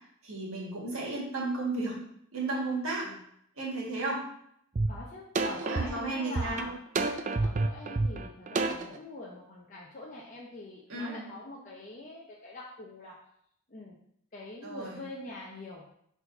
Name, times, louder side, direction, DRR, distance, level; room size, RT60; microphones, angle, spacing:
voice 1, 0.2-2.0 2.3-3.1 3.6-4.2 5.6-6.7 10.9-11.3 14.6-15.0, right 2 dB, 65° right, -4 dB, 2.2 m, -33 dB
sound 1, 4.8-4.9 5.4-9.0, right 3 dB, 35° right, 0.4 m, -29 dB
voice 2, 4.9-6.7 7.3-13.2 13.7-14.0 14.3-15.9, left 2 dB, 35° left, -4 dB, 0.8 m, -44 dB
4.8 x 4.1 x 5.5 m, 0.70 s
head